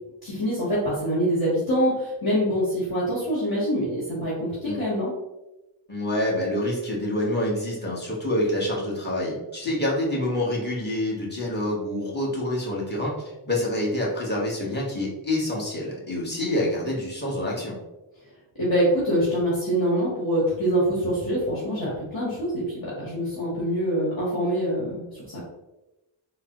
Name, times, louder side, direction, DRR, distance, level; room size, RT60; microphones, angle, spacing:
voice 1, 0.2-5.1 18.6-25.4, equal, 45° left, -8 dB, 1.4 m, -25 dB
voice 2, 5.9-13.1 13.4-17.8, left 1 dB, 20° left, -5 dB, 1.2 m, -27 dB
3.8 x 2.0 x 2.9 m, 1.0 s
cardioid pair, 45°, 49 cm